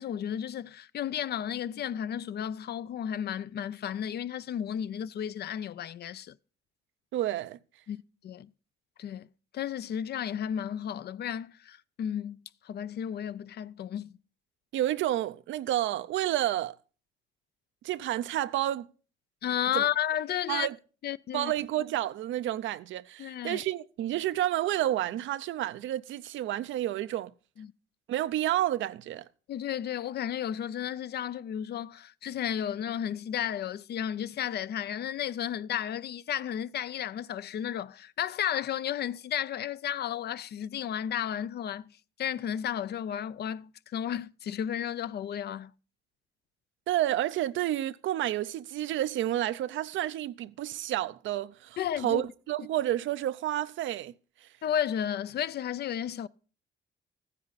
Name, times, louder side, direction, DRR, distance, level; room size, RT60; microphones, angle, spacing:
voice 1, 0.0-6.3 7.9-8.0 8.2-8.5 9.0-9.3 9.5-14.2 19.4-20.7 21.0-21.5 23.2-23.6 27.6-27.7 29.5-41.9 42.2-45.7 51.8-52.2 54.6-56.3, left 9 dB, 55° left, 0.5 m, -33 dB
voice 2, 7.1-7.6 14.7-16.8 17.8-18.9 19.7-19.8 20.5-20.7 21.3-27.3 28.1-29.2 46.9-51.8 52.0-54.1 54.4-54.5, right 13 dB, 75° right, 0.5 m, -30 dB
14.5 x 9.8 x 4.1 m
cardioid pair, 90°, 20 cm